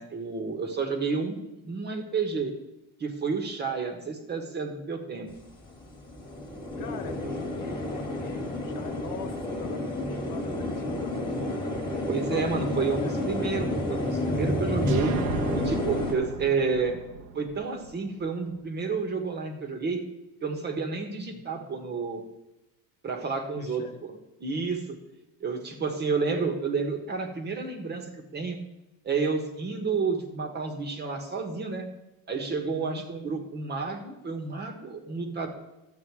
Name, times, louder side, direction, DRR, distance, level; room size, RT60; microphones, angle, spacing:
voice 1, 0.0-2.5 3.0-5.3 12.1-15.1 15.5-17.0 17.3-20.0 20.4-22.2 23.0-24.1 24.4-25.0 25.4-28.6 29.0-31.9 32.3-35.5, right 4 dB, 25° right, 5 dB, 1.5 m, -30 dB
sound 1, 5.3-5.4 5.6-16.1, left 1 dB, 10° left, 1.9 m, -30 dB
voice 2, 6.8-11.2 12.3-13.1 21.3-21.4 23.6-24.0 32.7-33.0, left 8 dB, 60° left, 7 dB, 1.4 m, -42 dB
sound 2, 14.9-18.6, right 7 dB, 75° right, 1.2 m, -36 dB
13.0 x 8.1 x 4.8 m, 0.98 s
cardioid pair, 165°, 37 cm